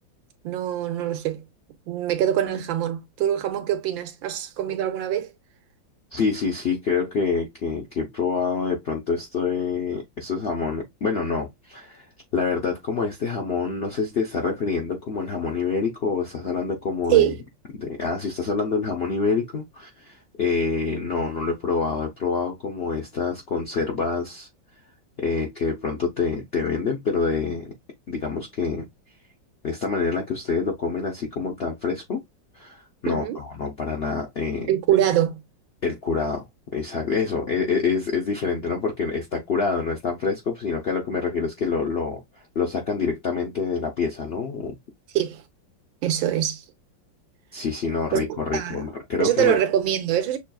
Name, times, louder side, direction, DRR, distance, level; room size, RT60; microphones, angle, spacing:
voice 1, 0.4-1.4 1.9-5.3 17.1-17.4 33.1-33.4 34.7-35.4 45.1-45.4 46.0-46.6 48.1-48.8 49.2-50.4, right 11 dB, 85° right, 1.5 m, -23 dB
voice 2, 6.1-12.1 12.3-17.3 17.8-24.5 25.2-27.7 28.1-28.9 29.6-32.2 32.5-34.7 35.8-36.4 36.7-42.2 42.5-44.8 47.5-49.6, left 5 dB, 80° left, 0.5 m, -26 dB
6.7 x 2.3 x 2.2 m
omnidirectional pair, 2.0 m